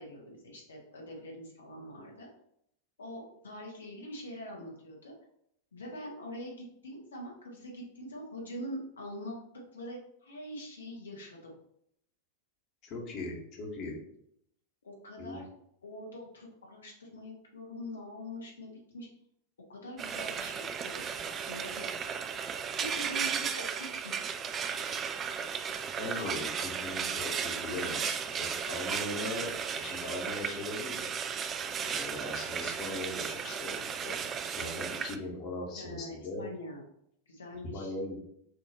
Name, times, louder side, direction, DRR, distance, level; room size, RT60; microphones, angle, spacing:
voice 1, 0.0-2.3 3.0-5.1 5.7-9.4 9.7-11.4 14.8-15.5 15.8-19.1 19.7-21.9 22.8-25.0 26.2-26.7 35.8-36.8 37.3-37.9, left 1 dB, 70° left, -2 dB, 1.2 m, -44 dB
voice 2, 12.8-14.0 15.2-15.4 26.0-31.1 31.8-34.2 34.5-36.4 37.7-38.3, left 2 dB, 40° left, -1 dB, 1.3 m, -39 dB
Frying (food), 20.0-35.2, right 7 dB, 25° right, 0.4 m, -35 dB
6.4 x 2.8 x 2.9 m, 0.73 s
figure-of-eight pair, 90°, 0 cm